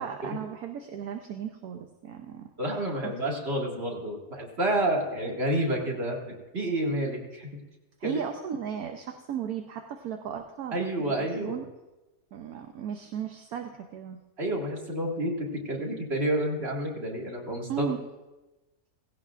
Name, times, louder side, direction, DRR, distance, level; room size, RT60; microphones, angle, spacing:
voice 1, 0.0-2.5 3.0-3.1 8.0-11.7 12.3-14.2 17.7-18.0, right 7 dB, 70° right, 4 dB, 1.2 m, -35 dB
voice 2, 2.6-7.5 8.0-8.2 10.7-11.6 14.4-17.9, right 1 dB, 40° right, -1 dB, 2.2 m, -29 dB
17.0 x 16.5 x 2.4 m, 1.1 s
omnidirectional pair, 1.7 m